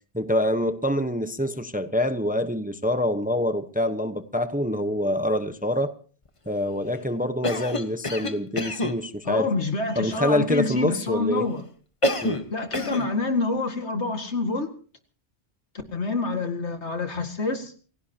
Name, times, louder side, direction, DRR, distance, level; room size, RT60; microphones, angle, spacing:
voice 1, 0.1-5.9 6.5-9.5 10.0-11.5 12.2-12.4, left 1 dB, 10° right, 0.9 m, -26 dB
Cough, 7.4-9.0 12.0-12.5 12.7-13.1, left 1 dB, 30° left, 1.3 m, -27 dB
voice 2, 9.2-11.6 12.5-14.7 15.9-17.7, left 3 dB, 75° left, 2.3 m, -27 dB
28.0 x 16.5 x 2.9 m
omnidirectional pair, 1.2 m